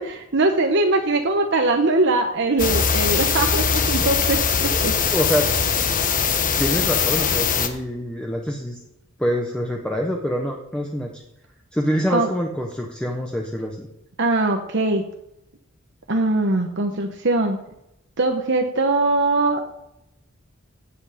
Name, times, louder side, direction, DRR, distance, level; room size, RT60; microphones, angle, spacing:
voice 1, 0.0-4.9 12.1-12.3 14.2-15.0 16.1-17.6 18.2-19.7, right 2 dB, 60° right, 4 dB, 1.1 m, -21 dB
sound 1, 2.6-7.7, left 6 dB, 40° left, 1.2 m, -21 dB
voice 2, 5.1-5.5 6.6-8.8 9.2-11.2 11.7-13.9, equal, 5° left, 0 dB, 1.2 m, -25 dB
16.5 x 8.1 x 5.1 m, 0.84 s
head